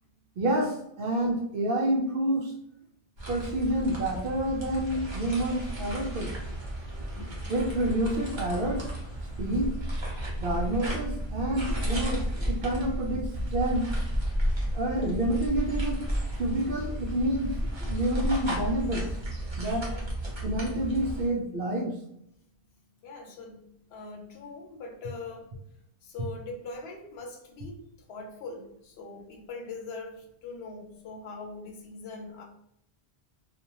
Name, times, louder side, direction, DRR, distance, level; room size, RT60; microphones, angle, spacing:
voice 1, 0.4-2.5 3.3-6.3 7.5-8.9 9.4-9.7 10.3-13.9 14.7-16.0 16.4-17.5 17.8-19.1 19.6-19.9 20.4-21.9, right 1 dB, 60° right, 1 dB, 0.7 m, -28 dB
sound 1, 3.2-21.3, equal, 30° right, 0.7 m, -32 dB
voice 2, 19.8-20.1 23.0-25.5 26.0-32.4, left 3 dB, 75° left, 2 dB, 0.8 m, -42 dB
2.4 x 2.2 x 2.9 m, 0.75 s
omnidirectional pair, 1.1 m